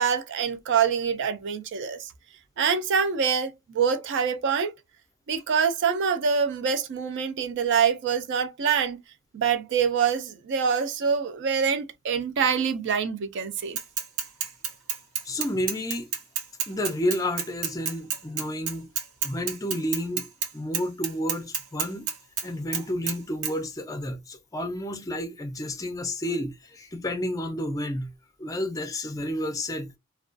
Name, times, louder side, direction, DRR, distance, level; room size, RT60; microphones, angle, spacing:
voice 1, 0.0-2.1 2.6-4.7 5.3-9.0 9.3-13.8, right 6 dB, 55° right, 0.3 m, -25 dB
Bicycle / Mechanisms, 13.8-20.5 20.7-22.5 22.7-23.2 23.4-23.5, right 8 dB, 75° right, 0.8 m, -29 dB
voice 2, 15.2-16.1 16.7-18.9 19.2-20.3 20.5-22.1 22.4-28.1 28.4-29.9, left 1 dB, 15° left, 0.4 m, -30 dB
2.3 x 2.2 x 2.5 m
head